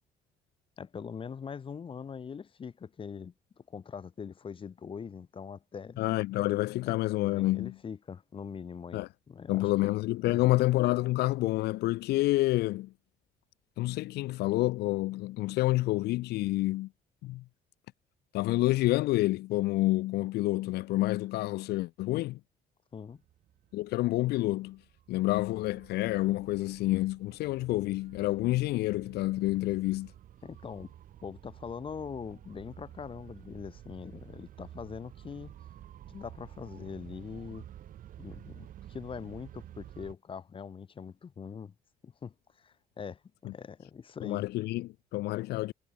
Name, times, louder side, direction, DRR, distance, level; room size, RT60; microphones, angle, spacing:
voice 1, 0.8-6.0 6.9-9.9 10.2-10.5 22.9-23.2 30.4-30.9 31.2-35.6 36.1-37.7 38.2-41.7 42.0-44.5, left 6 dB, 30° left, 1.0 m, -42 dB
voice 2, 6.0-7.7 8.9-9.1 9.5-12.9 13.8-16.9 17.2-17.4 18.3-22.4 23.7-24.8 25.1-30.1 43.4-43.5 44.2-45.7, left 18 dB, 75° left, 0.5 m, -28 dB
sound 1, 23.1-40.1, right 11 dB, 55° right, 1.0 m, -51 dB
cardioid pair, 110°, 17 cm